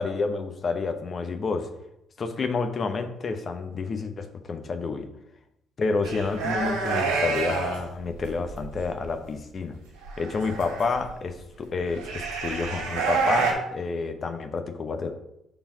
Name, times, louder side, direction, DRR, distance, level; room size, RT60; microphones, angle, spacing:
voice 1, 0.0-1.7 2.2-5.1 5.8-9.8 10.2-15.1, left 4 dB, 45° left, 7 dB, 0.9 m, -29 dB
sound 1, 6.0-7.8 8.2-8.7 10.0-11.1 11.9-13.5, right 5 dB, 75° right, 1.6 m, -28 dB
5.7 x 4.3 x 5.4 m, 0.84 s
figure-of-eight pair, 45°, 0 cm